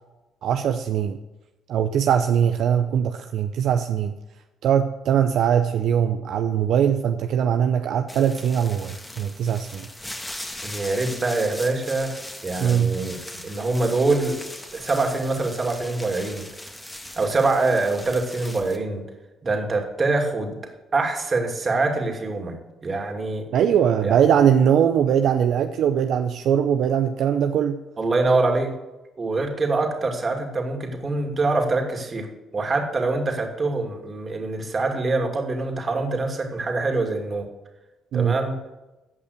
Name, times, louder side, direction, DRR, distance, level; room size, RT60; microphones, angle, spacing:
voice 1, 0.4-1.2 1.7-4.1 4.6-9.9 12.6-12.9 23.5-27.8 38.1-38.4, right 8 dB, 70° right, 7 dB, 0.6 m, -21 dB
sound 1, 8.1-18.8, left 1 dB, 10° left, 1.7 m, -39 dB
voice 2, 10.6-14.4 14.7-16.4 17.2-19.0 19.4-20.6 20.9-22.6 22.8-23.4 24.0-24.1 28.0-28.7 29.2-32.3 32.5-37.5 38.1-38.6, right 3 dB, 35° right, 3 dB, 2.6 m, -24 dB
15.0 x 5.5 x 6.6 m, 1.0 s
supercardioid pair, 70°, 0 cm